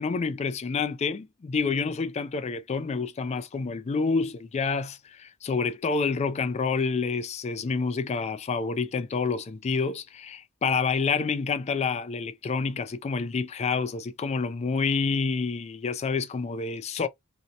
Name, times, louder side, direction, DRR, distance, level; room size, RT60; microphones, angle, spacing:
voice 1, 0.0-17.1, left 4 dB, 30° left, 0.3 m, -28 dB
2.5 x 2.1 x 2.7 m
head